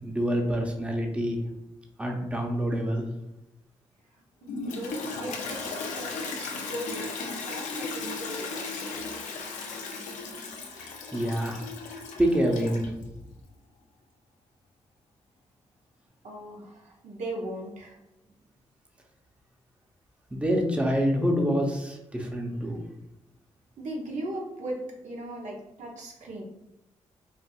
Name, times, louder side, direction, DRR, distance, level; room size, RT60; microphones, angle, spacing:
voice 1, 0.0-1.4 2.0-3.1 10.8-12.9 20.3-22.8, equal, 10° right, 1 dB, 0.8 m, -27 dB
voice 2, 4.4-8.8 16.2-18.0 23.8-26.4, right 1 dB, 70° right, -1 dB, 0.8 m, -38 dB
Toilet flush, 4.5-13.0, left 3 dB, 85° left, 0.5 m, -36 dB
4.4 x 2.5 x 2.4 m, 0.91 s
supercardioid pair, 50°, 13 cm